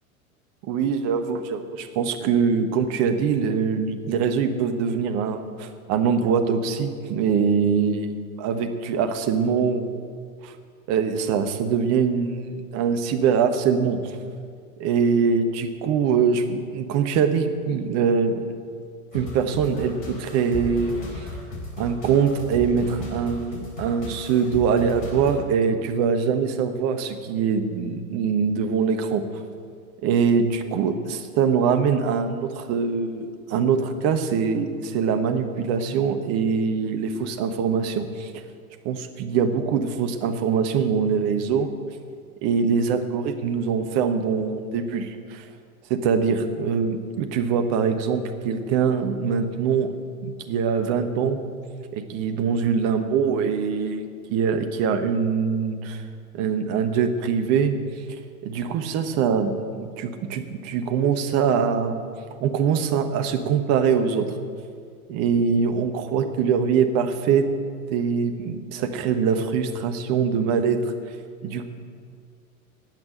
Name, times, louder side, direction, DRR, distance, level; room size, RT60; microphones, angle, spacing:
voice 1, 0.7-8.1 8.4-10.0 10.4-10.5 10.9-12.5 12.7-14.1 14.8-18.4 19.1-21.0 21.8-29.2 30.0-38.3 38.8-41.7 42.4-45.4 45.9-49.9 50.2-51.5 51.9-54.0 54.3-56.0 56.3-57.8 58.4-62.0 62.4-64.3 65.1-67.5 67.9-70.8 71.4-71.6, right 6 dB, 35° right, 7 dB, 1.3 m, -23 dB
sound 1, 19.1-25.4, left 1 dB, 60° left, 4.0 m, -36 dB
18.0 x 6.1 x 8.9 m, 2.1 s
figure-of-eight pair, 90°, 43 cm